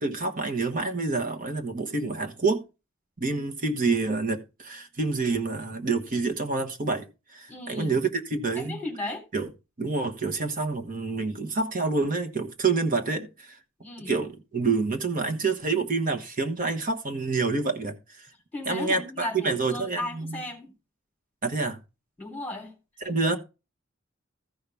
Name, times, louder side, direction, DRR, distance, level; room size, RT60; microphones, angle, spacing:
voice 1, 0.0-2.6 3.2-7.1 7.3-8.8 9.3-9.5 9.8-13.6 14.0-18.3 18.6-20.5 21.4-21.8 23.0-23.4, right 3 dB, 40° right, 1.2 m, -27 dB
voice 2, 7.5-8.0 8.6-9.2 13.8-14.1 18.5-20.7 22.2-22.7, left 2 dB, 10° left, 3.3 m, -35 dB
14.5 x 5.6 x 3.5 m
head